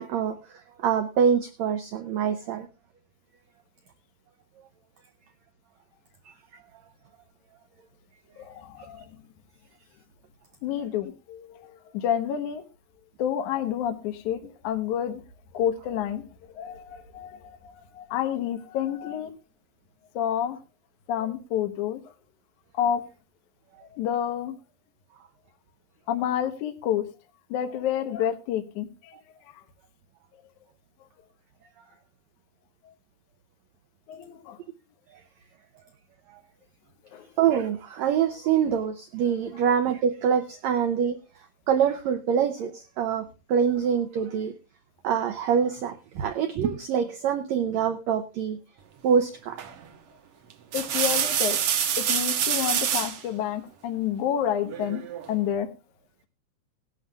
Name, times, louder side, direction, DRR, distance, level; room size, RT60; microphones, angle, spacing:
voice 1, 0.0-2.7 6.2-6.3 36.3-36.4 37.4-41.2 41.7-44.5 45.0-48.6 49.0-49.6, right 7 dB, 85° right, 8 dB, 1.5 m, -25 dB
voice 2, 8.4-9.1 10.6-12.6 13.2-15.2 15.5-16.2 16.5-19.3 20.2-20.6 21.1-22.0 22.8-23.1 23.9-24.6 26.1-27.1 27.5-29.2 34.1-34.6 37.1-37.3 50.7-51.6 52.0-55.0 55.3-55.7, left 10 dB, 65° left, 6 dB, 2.3 m, -29 dB
sound 1, 49.6-49.9 50.5-53.2 54.7-55.3, right 8 dB, 70° right, 1.4 m, -26 dB
18.5 x 11.5 x 2.3 m, 0.31 s
omnidirectional pair, 4.0 m